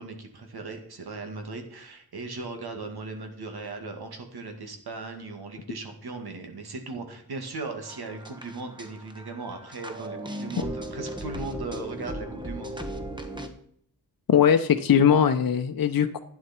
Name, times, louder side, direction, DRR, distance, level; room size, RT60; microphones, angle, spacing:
voice 1, 0.0-12.7, right 3 dB, 85° right, 5 dB, 2.2 m, -38 dB
sound 1, 7.8-13.5, equal, 10° right, 1.2 m, -37 dB
voice 2, 14.3-16.2, left 8 dB, 65° left, 6 dB, 0.8 m, -20 dB
12.0 x 9.5 x 4.4 m, 0.66 s
wide cardioid pair, 140°, 37 cm